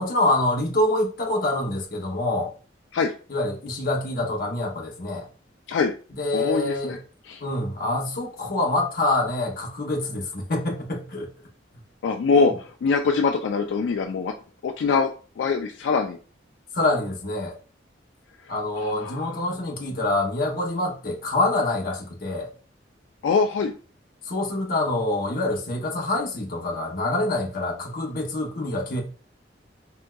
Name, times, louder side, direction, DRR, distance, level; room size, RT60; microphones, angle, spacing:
voice 1, 0.0-2.5 3.3-5.3 6.1-7.0 7.4-11.3 16.7-17.5 18.5-22.5 24.3-29.0, left 2 dB, 50° left, 0.9 m, -26 dB
voice 2, 6.3-7.0 7.3-7.4 12.0-14.3 14.6-15.1 15.4-16.2 18.4-18.5 18.8-19.3 23.2-23.7, left 4 dB, 80° left, 0.3 m, -23 dB
3.5 x 2.8 x 2.2 m
head